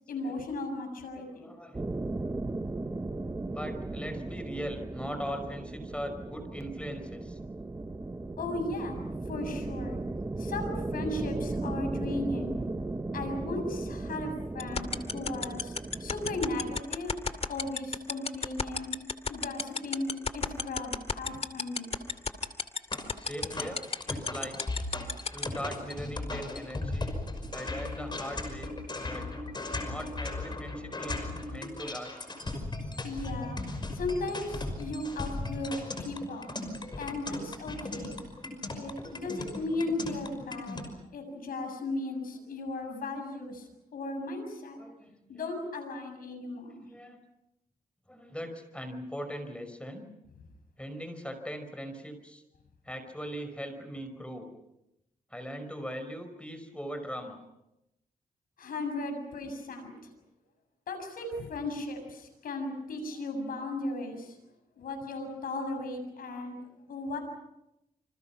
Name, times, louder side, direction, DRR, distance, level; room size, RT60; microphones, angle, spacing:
voice 1, 0.1-1.5 8.4-10.0 10.4-12.6 13.1-17.2 17.5-18.9 19.3-22.0 33.0-36.6 36.9-38.2 38.7-44.8 45.3-46.8 58.6-59.9 60.9-64.4 64.8-67.2, left 2 dB, 85° left, 5 dB, 7.1 m, -36 dB
voice 2, 1.2-1.8 3.5-7.4 23.2-24.6 25.3-27.1 27.5-28.7 29.0-29.3 29.8-32.2 44.8-45.4 46.9-47.2 48.1-50.1 50.8-52.4 52.8-54.5 55.3-57.4, equal, 10° left, 7 dB, 5.4 m, -40 dB
sound 1, 1.7-16.8, right 2 dB, 20° right, 1.4 m, -36 dB
sound 2, 14.6-25.4, left 5 dB, 45° left, 2.5 m, -29 dB
sound 3, 22.9-40.9, left 2 dB, 30° left, 5.7 m, -37 dB
28.0 x 26.0 x 6.0 m, 0.87 s
cardioid pair, 90°, 15 cm